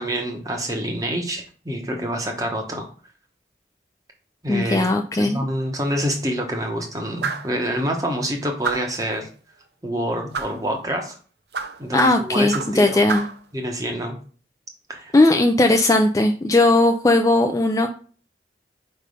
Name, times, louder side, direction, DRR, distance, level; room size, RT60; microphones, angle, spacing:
voice 1, 0.0-2.9 4.4-4.9 5.1-9.3 9.8-11.2 11.8-13.0 13.5-14.2 14.9-15.1, equal, 20° right, 2 dB, 1.0 m, -27 dB
voice 2, 4.5-5.4 11.9-13.3 15.1-17.9, left 2 dB, 20° left, 4 dB, 0.4 m, -18 dB
sound 1, 7.2-7.5 8.6-9.0 10.3-10.6 11.5-12.8 13.1-13.4, right 5 dB, 70° right, 0.7 m, -28 dB
5.2 x 3.4 x 5.3 m, 0.41 s
head